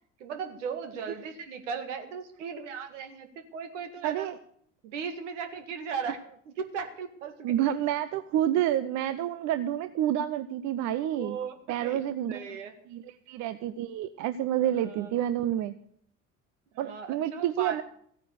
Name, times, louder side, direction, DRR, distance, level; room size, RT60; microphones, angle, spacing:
voice 1, 0.2-4.3 4.8-6.2 6.5-7.7 11.1-11.5 11.8-12.0 12.3-12.7 14.8-15.1 16.7-17.8, right 6 dB, 70° right, 8 dB, 1.9 m, -37 dB
voice 2, 4.0-4.4 7.4-11.4 11.7-12.6 12.9-15.7 16.8-17.8, right 11 dB, 45° right, 13 dB, 0.7 m, -29 dB
15.5 x 9.4 x 6.6 m, 0.63 s
figure-of-eight pair, 55°, 39 cm